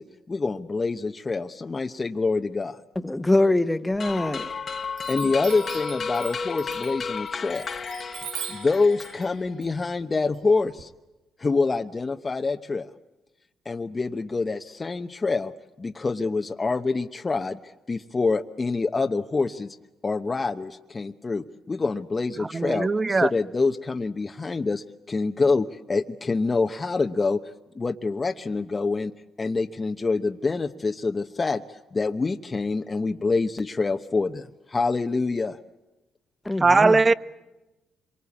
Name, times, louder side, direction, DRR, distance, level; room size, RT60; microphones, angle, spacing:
voice 1, 0.0-2.8 5.1-7.7 8.5-10.9 11.4-12.9 13.6-15.5 15.8-19.8 20.0-27.4 27.7-29.1 29.4-35.6, left 3 dB, 30° left, 0.9 m, -26 dB
voice 2, 2.9-4.5 36.4-37.0, left 2 dB, 10° left, 1.3 m, -23 dB
Chime, 3.9-4.6 5.0-10.8, right 9 dB, 85° right, 1.7 m, -41 dB
sound 1, 4.0-9.6, left 5 dB, 45° left, 1.4 m, -33 dB
voice 3, 22.4-23.3 36.6-37.1, right 3 dB, 30° right, 0.9 m, -20 dB
26.5 x 24.0 x 8.6 m
cardioid pair, 90°, 0 cm